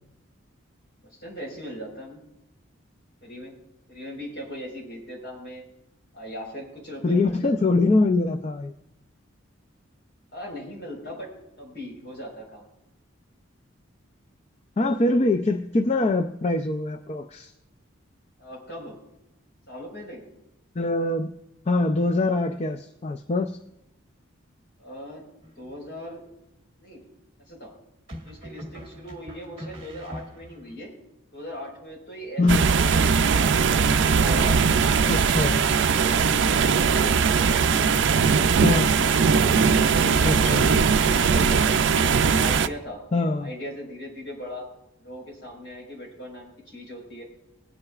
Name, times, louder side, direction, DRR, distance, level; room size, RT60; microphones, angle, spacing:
voice 1, 1.2-2.2 3.2-3.6 3.9-5.6 6.1-7.5 10.3-12.7 18.4-19.0 19.7-20.2 24.8-25.3 25.6-26.2 26.8-27.0 27.5-27.7 28.2-30.9 31.3-33.5 34.1-34.6 35.3-35.5 35.8-37.1 37.6-38.2 39.0-39.2 39.7-41.7 42.0-43.0 43.4-44.7 45.0-47.2, left 1 dB, 55° left, -1 dB, 4.4 m, -39 dB
voice 2, 7.0-8.7 14.8-17.5 20.8-21.3 21.7-23.6 32.4-32.6 35.1-35.6 38.6-39.0 40.2-40.7 43.1-43.5, left 2 dB, 30° left, 7 dB, 0.4 m, -23 dB
sound 1, 25.4-26.0 28.1-30.8, equal, 30° right, 1.8 m, -42 dB
sound 2, 32.5-42.7, right 5 dB, 60° right, 0.4 m, -20 dB
20.0 x 9.8 x 2.4 m, 0.86 s
head